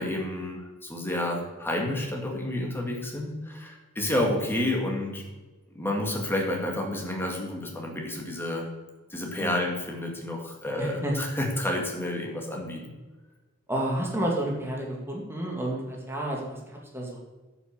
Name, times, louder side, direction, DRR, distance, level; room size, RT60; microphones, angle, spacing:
voice 1, 0.0-5.2 5.7-8.6 9.1-12.9, left 1 dB, 10° left, 0 dB, 1.9 m, -30 dB
voice 2, 10.8-11.1 13.7-17.2, right 1 dB, 10° right, -2 dB, 2.1 m, -30 dB
9.7 x 6.1 x 6.6 m, 1.2 s
head